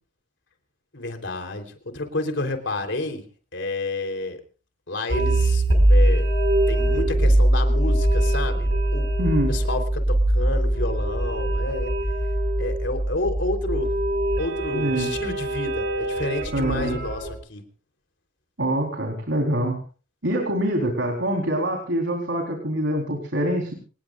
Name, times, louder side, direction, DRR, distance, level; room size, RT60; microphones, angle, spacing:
voice 1, 0.9-3.2 3.5-4.4 4.9-5.6 5.9-6.3 6.7-9.1 9.5-11.9 12.6-13.9 14.4-17.6, left 2 dB, 80° left, 5 dB, 3.6 m, -30 dB
sound 1, 5.1-17.3, right 1 dB, 65° right, 5.1 m, -22 dB
voice 2, 9.2-9.5 14.7-15.1 16.5-17.0 18.6-19.8 20.2-23.7, right 1 dB, 85° right, 2 dB, 4.0 m, -25 dB
27.5 x 19.5 x 2.5 m, 0.37 s
head